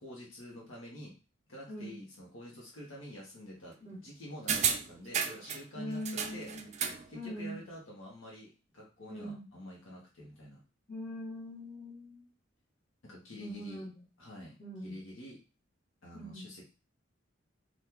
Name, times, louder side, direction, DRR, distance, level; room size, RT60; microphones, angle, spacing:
voice 1, 0.0-1.1 1.5-3.7 4.0-6.5 7.1-10.6 13.0-13.8 14.2-14.6 14.8-15.4 16.0-16.6, left 1 dB, 75° left, -3 dB, 1.1 m, -48 dB
voice 2, 1.7-2.0 3.8-4.0 5.7-6.7 7.1-7.6 9.1-9.5 10.9-12.3 13.4-14.0 14.6-15.0 16.1-16.5, equal, 40° left, -4 dB, 1.4 m, -42 dB
sound 1, 4.5-5.6 6.0-7.1 7.4-7.5, right 7 dB, 35° right, 0.4 m, -32 dB
3.7 x 2.5 x 2.9 m, 0.32 s
head